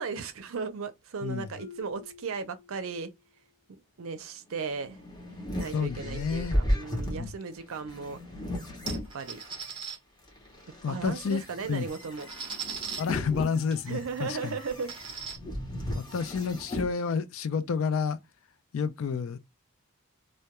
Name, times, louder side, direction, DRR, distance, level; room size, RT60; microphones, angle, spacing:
voice 1, 0.0-3.1 3.7-5.0 5.6-8.2 8.9-9.4 10.9-12.3 13.9-15.0, right 5 dB, 70° right, 0.5 m, -36 dB
Marimba xylophone, 1.6-3.3, left 5 dB, 85° left, 0.7 m, -50 dB
sound 1, 4.7-9.7 10.3-16.9, equal, 20° left, 0.6 m, -35 dB
voice 2, 5.7-6.6 7.2-7.3 10.8-11.4 11.7-11.9 13.0-14.6 16.0-18.2 18.7-19.4, left 5 dB, 70° left, 0.4 m, -30 dB
sound 2, 8.9-10.0 11.2-11.3 11.7-13.0 13.7-13.8 14.2-14.3 14.7-15.4, right 6 dB, 25° right, 0.6 m, -39 dB
2.2 x 2.1 x 2.8 m
head